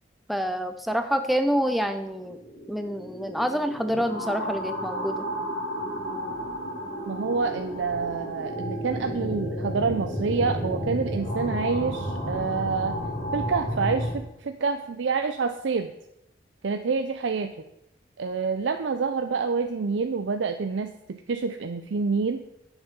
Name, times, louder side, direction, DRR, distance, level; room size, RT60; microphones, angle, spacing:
voice 1, 0.3-2.4 2.7-5.2, equal, ahead, 8 dB, 0.4 m, -27 dB
sound 1, 2.2-14.1, equal, 85° left, 3.6 m, -32 dB
voice 2, 7.1-13.0 13.3-15.9 16.6-17.5 18.2-22.4, right 5 dB, 80° right, 8 dB, 0.5 m, -27 dB
7.3 x 6.5 x 6.7 m, 0.82 s
head